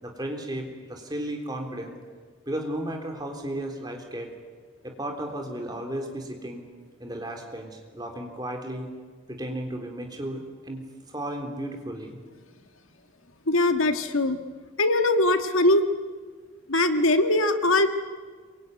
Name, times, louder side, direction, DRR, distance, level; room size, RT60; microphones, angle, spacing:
voice 1, 0.0-2.0 2.5-4.3 4.8-6.6 7.0-8.9 9.3-12.2, right 1 dB, 20° right, 2 dB, 3.8 m, -34 dB
voice 2, 13.5-14.4 14.8-15.8 16.7-17.9, left 2 dB, 85° left, 8 dB, 1.7 m, -21 dB
26.5 x 23.5 x 9.6 m, 1.5 s
head